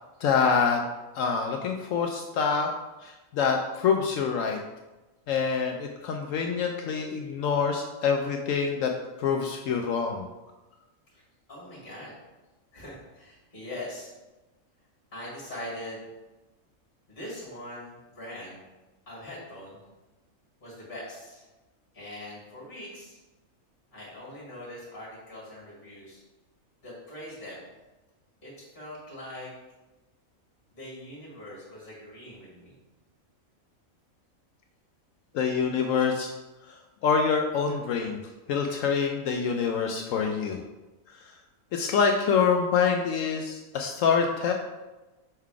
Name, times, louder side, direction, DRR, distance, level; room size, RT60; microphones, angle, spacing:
voice 1, 0.2-0.8 1.1-2.7 3.0-4.6 5.3-8.9 9.2-10.3 35.3-36.3 36.7-36.8 37.0-38.2 38.5-40.6 41.1-41.2 41.7-44.5, left 6 dB, 70° left, 3 dB, 0.9 m, -26 dB
voice 2, 11.5-12.1 12.7-14.1 15.1-16.1 17.1-18.6 19.1-19.8 20.6-21.5 21.9-23.2 23.9-26.2 26.8-27.6 28.4-29.5 30.7-32.7, left 1 dB, 40° left, -6 dB, 1.8 m, -42 dB
5.5 x 3.8 x 4.7 m, 1.1 s
omnidirectional pair, 1.5 m